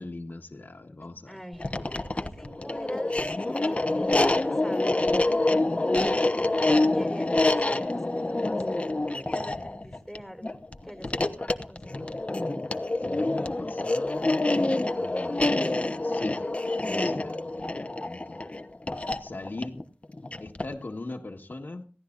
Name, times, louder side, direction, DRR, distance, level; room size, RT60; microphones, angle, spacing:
voice 1, 0.0-1.4 13.0-14.4 15.0-16.5 16.9-18.4 19.2-19.8 20.4-21.8, left 2 dB, 70° left, 1.6 m, -40 dB
voice 2, 1.0-1.7 2.3-5.0 6.6-10.5 10.8-12.2, equal, ahead, 4.0 m, -42 dB
sound 1, 1.5-20.8, left 2 dB, 35° left, 1.1 m, -27 dB
22.5 x 16.0 x 2.6 m
wide cardioid pair, 60°, 3 cm